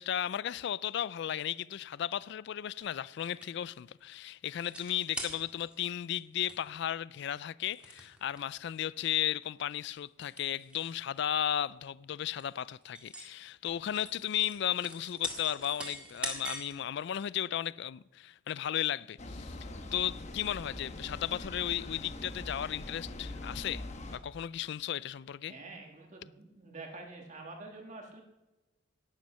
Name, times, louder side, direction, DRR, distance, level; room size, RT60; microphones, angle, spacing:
voice 1, 0.0-23.8 24.1-25.5, left 11 dB, 55° left, 0.3 m, -35 dB
sound 1, 2.8-3.7 4.6-5.8 6.1-6.2 6.5-6.8 7.7-8.4 9.0-9.2 9.7-10.9 11.2-11.4 12.0-12.1 12.4-13.3 13.7-16.8 17.2-17.3, right 1 dB, 5° right, 1.9 m, -43 dB
sound 2, 19.2-24.2, left 1 dB, 35° left, 1.1 m, -43 dB
voice 2, 25.5-28.2, right 3 dB, 35° right, 1.7 m, -47 dB
11.5 x 10.5 x 5.6 m
head